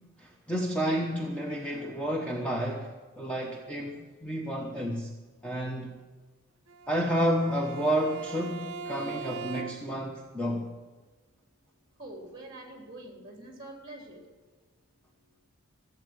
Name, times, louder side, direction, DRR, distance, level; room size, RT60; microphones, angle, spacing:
voice 1, 0.2-2.9 3.2-5.1 5.4-5.9 6.9-10.7, equal, 5° left, 0 dB, 1.0 m, -30 dB
Bowed string instrument, 6.7-10.1, right 5 dB, 65° right, 0.9 m, -40 dB
voice 2, 12.0-14.2, right 1 dB, 20° right, 0 dB, 3.4 m, -45 dB
15.0 x 8.1 x 8.9 m, 1.3 s
head